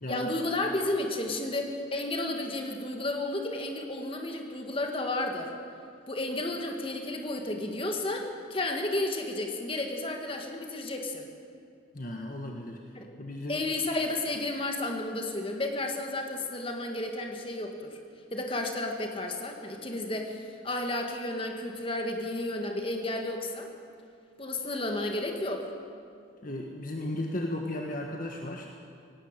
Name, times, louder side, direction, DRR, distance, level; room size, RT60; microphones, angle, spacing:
voice 1, 0.1-5.5 6.1-11.3 12.9-13.1 13.5-18.0 18.3-23.7 24.4-25.7, left 2 dB, 25° left, 3 dB, 2.1 m, -32 dB
voice 2, 11.9-12.8 13.2-13.6 26.4-28.7, left 1 dB, 40° left, 1 dB, 1.6 m, -35 dB
18.0 x 17.5 x 9.1 m, 2.4 s
head